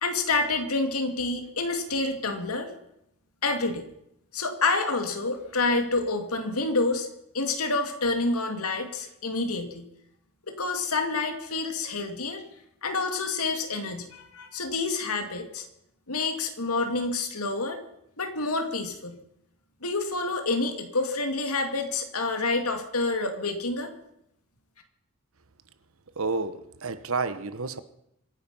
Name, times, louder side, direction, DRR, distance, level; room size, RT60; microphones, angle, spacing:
voice 1, 0.0-2.7 3.4-3.8 4.3-7.1 7.3-9.9 10.5-12.4 12.8-15.7 16.1-17.8 18.2-19.2 19.8-23.9, left 3 dB, 85° left, 2.5 m, -28 dB
voice 2, 26.2-27.8, right 3 dB, 65° right, 1.1 m, -30 dB
25.5 x 10.0 x 5.6 m
head